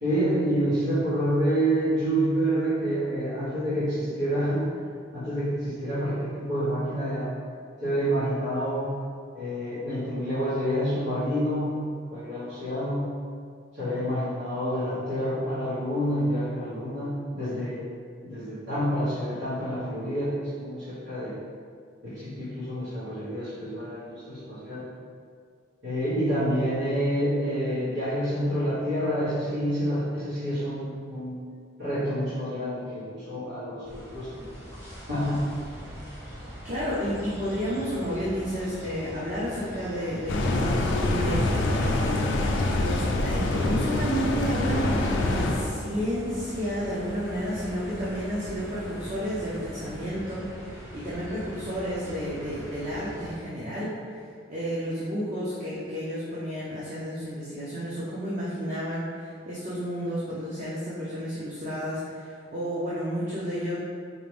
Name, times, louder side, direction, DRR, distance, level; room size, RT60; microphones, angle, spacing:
voice 1, 0.0-4.7 5.1-7.3 7.8-8.9 9.3-13.1 13.8-17.8 18.2-21.3 22.0-24.8 25.8-31.4 31.8-34.4 35.1-35.5, equal, 85° right, -16 dB, 1.4 m, -28 dB
sound 1, 33.8-53.3, equal, 15° right, 0.9 m, -42 dB
voice 2, 36.6-41.5 42.8-54.2 54.5-63.8, equal, 40° right, -8 dB, 0.6 m, -31 dB
sound 2, 40.3-45.8, left 2 dB, 85° left, 0.4 m, -25 dB
sound 3, 42.0-50.1, equal, ahead, 0.3 m, -43 dB
4.7 x 2.5 x 3.4 m, 2.1 s
head